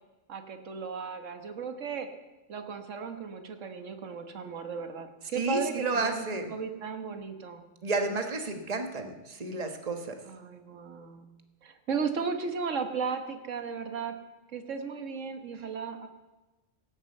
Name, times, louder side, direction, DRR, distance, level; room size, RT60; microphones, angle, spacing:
voice 1, 0.3-2.1 2.5-7.6 10.3-11.3 11.6-14.1 14.5-16.1, right 5 dB, 80° right, 6 dB, 1.7 m, -35 dB
voice 2, 5.3-6.5 7.8-10.2, right 3 dB, 30° right, 5 dB, 1.4 m, -31 dB
17.0 x 8.1 x 7.9 m, 1.1 s
omnidirectional pair, 1.3 m